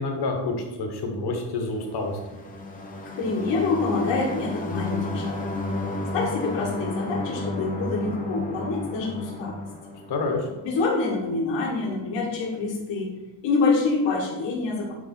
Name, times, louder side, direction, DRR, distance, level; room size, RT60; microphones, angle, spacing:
voice 1, 0.0-2.2 10.1-10.5, left 3 dB, 60° left, 3 dB, 1.5 m, -28 dB
sound 1, 1.9-10.6, left 2 dB, 20° left, 0.9 m, -32 dB
voice 2, 3.1-5.5 6.1-9.6 10.6-13.1 13.4-14.9, left 3 dB, 75° left, -2 dB, 1.7 m, -26 dB
8.9 x 3.5 x 4.4 m, 1.1 s
cardioid pair, 140°, 44 cm